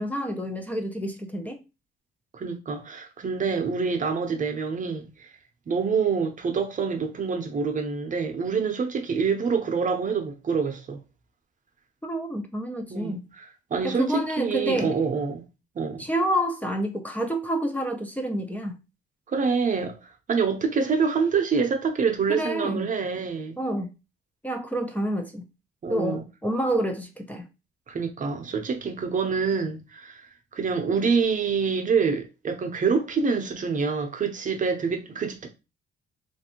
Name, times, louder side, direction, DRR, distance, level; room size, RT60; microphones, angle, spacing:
voice 1, 0.0-1.6 12.0-13.3 13.8-14.9 16.0-18.7 22.3-22.9 23.6-23.9 24.4-25.4 25.9-27.4, right 1 dB, 10° left, 0.5 m, -28 dB
voice 2, 2.3-5.3 5.7-11.0 12.9-15.4 15.8-16.1 19.3-23.6 25.8-26.2 27.9-30.2 30.5-35.5, right 5 dB, 40° right, 0.7 m, -26 dB
3.1 x 2.6 x 2.9 m
cardioid pair, 90°, 20 cm